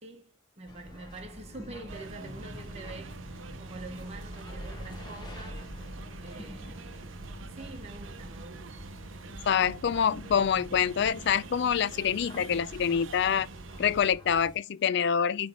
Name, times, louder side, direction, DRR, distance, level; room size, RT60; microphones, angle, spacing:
voice 1, 0.0-5.7 6.2-7.1 7.4-8.8 9.6-10.0, right 2 dB, 35° right, 1.0 m, -46 dB
sound 1, 0.7-14.6, left 1 dB, 25° left, 1.4 m, -46 dB
sound 2, 1.9-14.1, right 4 dB, 80° right, 0.7 m, -45 dB
voice 2, 9.4-13.5 13.8-15.5, left 7 dB, 60° left, 0.4 m, -26 dB
9.1 x 3.3 x 3.8 m
head